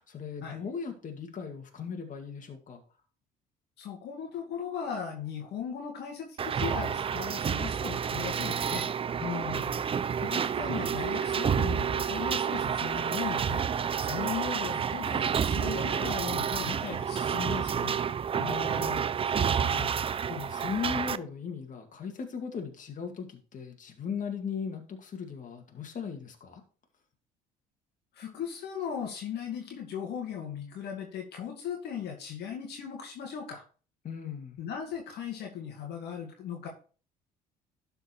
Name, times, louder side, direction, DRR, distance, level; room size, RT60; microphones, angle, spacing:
voice 1, 0.0-2.8 9.2-9.8 18.4-26.6 34.0-34.6, left 6 dB, 40° left, 4 dB, 2.2 m, -38 dB
voice 2, 3.8-8.9 10.2-13.6 14.0-18.0 28.1-33.6 34.6-36.7, left 8 dB, 55° left, 1 dB, 2.0 m, -38 dB
sound 1, 6.4-21.2, right 7 dB, 30° right, 0.5 m, -29 dB
12.0 x 4.5 x 4.4 m, 0.38 s
hypercardioid pair, 60°, 20 cm